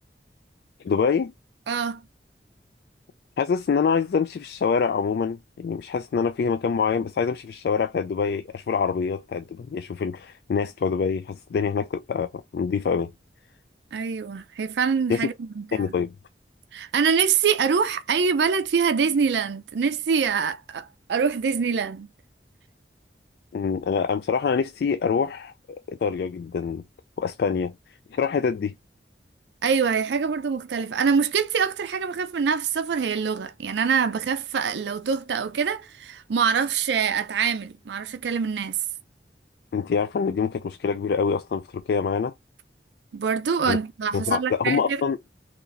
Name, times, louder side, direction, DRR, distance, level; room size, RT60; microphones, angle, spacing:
voice 1, 0.8-1.3 3.4-13.1 15.1-15.3 15.7-16.1 23.5-25.5 25.9-26.8 27.2-27.7 28.1-28.7 39.7-42.3 43.7-43.8 44.1-45.2, left 6 dB, 65° left, 0.3 m, -25 dB
voice 2, 1.7-2.0 13.9-15.9 16.7-22.1 29.6-38.8 43.1-45.0, right 6 dB, 80° right, 0.4 m, -25 dB
4.0 x 2.9 x 2.5 m
head